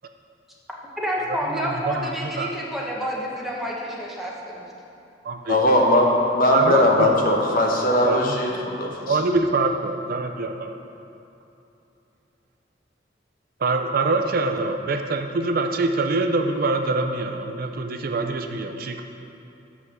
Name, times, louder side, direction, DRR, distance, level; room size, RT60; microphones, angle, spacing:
voice 1, 1.0-4.6, equal, ahead, -4 dB, 1.1 m, -29 dB
voice 2, 1.5-2.5 5.2-5.6 6.5-7.2 8.0-8.4 9.1-10.7 13.6-19.0, right 3 dB, 55° right, 6 dB, 0.5 m, -24 dB
voice 3, 5.5-9.2, left 1 dB, 50° left, 0 dB, 1.1 m, -19 dB
6.2 x 5.6 x 6.4 m, 2.8 s
head